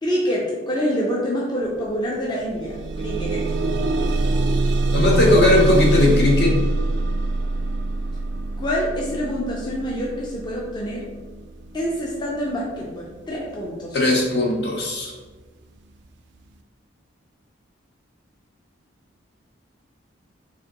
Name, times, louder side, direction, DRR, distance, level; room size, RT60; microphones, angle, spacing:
voice 1, 0.0-3.4 8.6-11.1 11.7-14.0, equal, 20° left, -4 dB, 0.4 m, -26 dB
sound 1, 1.7-1.8 2.2-13.2 14.0-14.1 14.6-14.7, right 2 dB, 60° right, 0.3 m, -24 dB
voice 2, 4.9-6.6 13.9-15.1, left 2 dB, 55° left, 0 dB, 0.7 m, -18 dB
4.7 x 2.5 x 2.9 m, 1.3 s
head